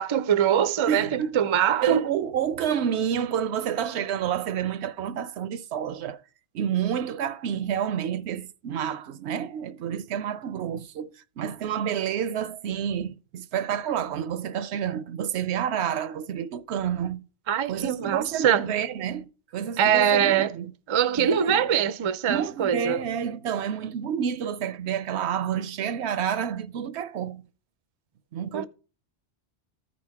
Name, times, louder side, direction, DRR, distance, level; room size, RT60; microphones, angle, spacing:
voice 1, 0.0-2.0 17.5-18.6 19.8-20.5 20.9-23.0 28.5-28.6, right 8 dB, 45° right, 0.4 m, -23 dB
voice 2, 0.8-1.4 1.8-6.2 6.5-17.3 17.7-20.7 21.2-21.6 22.3-27.5 28.3-28.7, right 9 dB, 75° right, 0.8 m, -29 dB
14.0 x 5.1 x 3.5 m
omnidirectional pair, 1.1 m